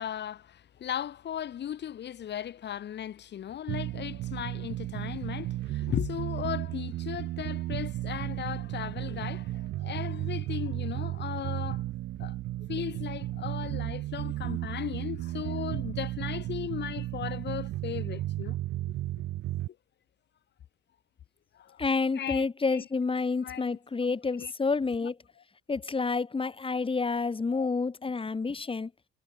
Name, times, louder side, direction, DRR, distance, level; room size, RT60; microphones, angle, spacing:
voice 1, 0.0-11.8 12.2-12.4 12.7-18.6 21.5-21.8 22.1-22.8 23.4-24.5 25.0-25.1 26.4-26.5 27.5-27.7, left 10 dB, 60° left, 1.4 m, -37 dB
sound 1, 3.7-19.7, right 15 dB, 85° right, 2.3 m, -34 dB
voice 2, 21.8-25.2 25.7-28.9, left 4 dB, 25° left, 2.3 m, -29 dB
cardioid pair, 90°, 20 cm